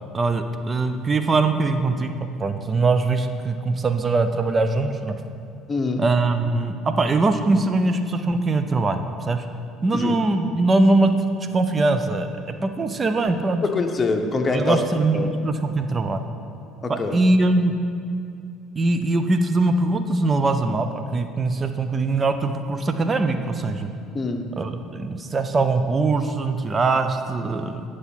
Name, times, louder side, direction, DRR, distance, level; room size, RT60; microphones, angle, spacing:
voice 1, 0.1-2.1 2.4-5.2 6.0-9.5 9.8-11.2 11.5-13.6 14.5-16.3 16.9-17.8 18.8-23.9 24.6-27.8, right 3 dB, 30° right, 8 dB, 0.6 m, -22 dB
voice 2, 5.7-6.0 9.9-10.1 13.6-14.8 15.1-15.3 16.8-17.2 24.1-24.5, left 3 dB, 30° left, 4 dB, 0.9 m, -24 dB
9.6 x 4.9 x 5.9 m, 2.4 s
hypercardioid pair, 65°, 0 cm